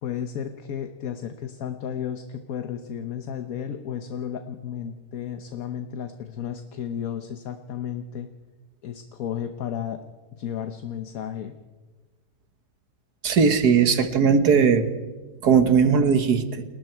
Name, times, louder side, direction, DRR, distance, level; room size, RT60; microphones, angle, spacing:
voice 1, 0.0-8.3 8.8-10.0 10.3-11.5, left 9 dB, 65° left, 8 dB, 1.4 m, -33 dB
voice 2, 13.2-14.9 15.4-16.6, right 6 dB, 75° right, 10 dB, 2.0 m, -18 dB
29.0 x 20.5 x 4.6 m, 1.3 s
omnidirectional pair, 1.7 m